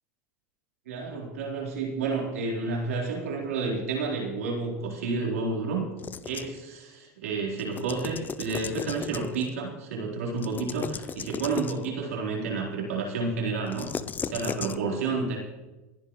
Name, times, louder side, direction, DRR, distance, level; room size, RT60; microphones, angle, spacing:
voice 1, 0.9-5.9 6.2-13.9 14.2-15.4, right 4 dB, 90° right, -2 dB, 4.2 m, -30 dB
sound 1, 6.0-6.6 7.6-9.5 10.4-11.9 13.7-14.8, left 6 dB, 25° left, 0.6 m, -36 dB
30.0 x 10.5 x 3.2 m, 1.2 s
supercardioid pair, 110°, 8 cm